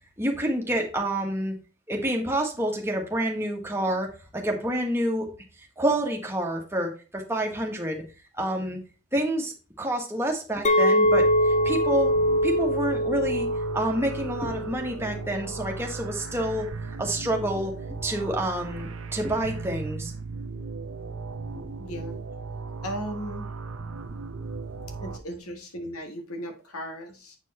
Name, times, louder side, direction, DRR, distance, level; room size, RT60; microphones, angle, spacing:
voice 1, 0.2-1.5 1.9-5.3 5.8-8.0 8.3-8.8 9.1-12.1 12.4-13.5 13.7-16.7 17.0-17.7 18.0-20.1, right 1 dB, 10° right, 1 dB, 1.4 m, -28 dB
Chink clink, 10.6-15.0 15.3-15.8, equal, 30° left, 0.6 m, -24 dB
sound 1, 11.0-25.2, right 4 dB, 70° right, 0.7 m, -37 dB
voice 2, 21.8-22.2 22.8-23.5 25.0-27.4, equal, 85° left, 6 dB, 1.7 m, -36 dB
8.2 x 4.6 x 4.1 m, 0.33 s
head